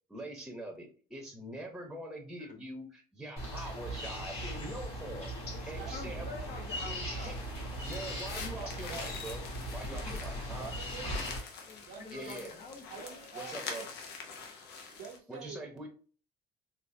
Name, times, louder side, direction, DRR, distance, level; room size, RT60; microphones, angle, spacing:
voice 1, 0.1-5.3 5.7-6.3 6.9-7.4 7.8-9.4 9.7-10.7 12.1-12.5 13.3-13.8 15.3-15.9, right 1 dB, 5° right, 1 dB, 0.9 m, -43 dB
sound 1, 3.4-11.4, equal, 35° left, 1.8 m, -39 dB
voice 2, 5.5-7.4 11.5-13.2, left 4 dB, 50° left, 3 dB, 1.0 m, -47 dB
sound 2, 7.2-15.2, left 5 dB, 80° left, 0.8 m, -45 dB
voice 3, 8.5-9.3 10.6-11.4 11.8-12.5 12.9-13.9 15.0-15.7, right 6 dB, 75° right, -3 dB, 0.8 m, -47 dB
4.0 x 2.6 x 2.7 m, 0.40 s
cardioid pair, 110°, 17 cm